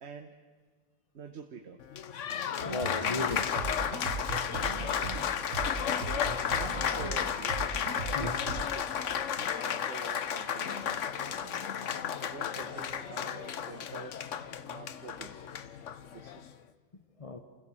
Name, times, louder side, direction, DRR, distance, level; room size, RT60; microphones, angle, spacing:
voice 1, 0.0-0.3 1.1-1.8 2.8-2.9 6.5-8.4 8.7-11.7 12.2-14.2 14.7-15.5 16.1-16.4, right 6 dB, 55° right, 6 dB, 1.3 m, -47 dB
Applause, 1.8-16.5, left 8 dB, 65° left, 1.2 m, -33 dB
voice 2, 2.6-3.6 8.1-8.4 16.9-17.4, left 3 dB, 30° left, 7 dB, 0.9 m, -36 dB
sound 1, 2.6-8.6, right 4 dB, 70° right, 1.9 m, -38 dB
28.0 x 16.0 x 7.6 m, 1.5 s
omnidirectional pair, 1.4 m